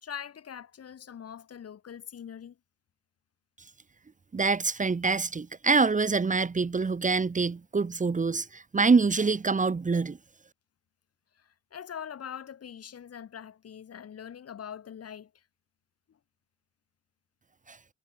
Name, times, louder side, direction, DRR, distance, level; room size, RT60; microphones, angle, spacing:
voice 1, 0.0-2.6 11.3-15.4 16.1-16.2, left 8 dB, 55° left, 3.0 m, -43 dB
voice 2, 4.3-10.2 17.7-17.8, right 4 dB, 25° right, 1.5 m, -25 dB
cardioid pair, 90°, 30 cm